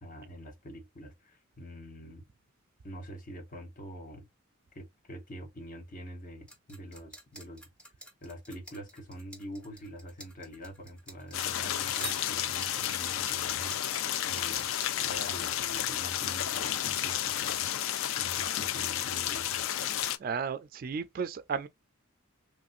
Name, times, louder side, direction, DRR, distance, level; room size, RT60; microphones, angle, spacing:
voice 1, 0.0-2.3 2.8-4.3 4.7-7.7 8.2-14.7 15.0-17.7 18.2-19.6, equal, 40° left, 0.9 m, -45 dB
sound 1, 6.5-14.8, equal, 5° left, 0.6 m, -45 dB
Rain Fountain Splashes Close, 11.3-20.2, left 11 dB, 70° left, 0.3 m, -32 dB
voice 2, 20.2-21.7, right 6 dB, 45° right, 0.3 m, -34 dB
3.1 x 2.6 x 2.4 m
head